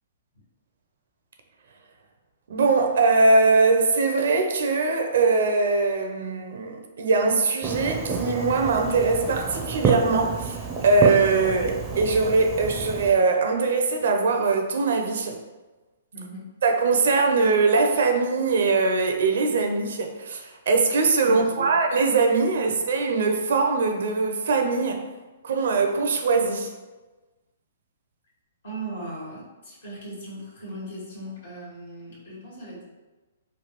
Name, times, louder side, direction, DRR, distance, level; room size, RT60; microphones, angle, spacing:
voice 1, 2.5-15.4 16.6-25.1 25.4-26.7, right 3 dB, 70° right, 4 dB, 0.5 m, -22 dB
Fireworks, 7.6-13.1, right 4 dB, 20° right, 0.4 m, -29 dB
voice 2, 16.1-16.5 21.2-21.7 22.7-22.8 28.6-32.8, right 2 dB, 80° left, -7 dB, 1.5 m, -38 dB
3.2 x 2.3 x 2.9 m, 1.2 s
hypercardioid pair, 135°, 0 cm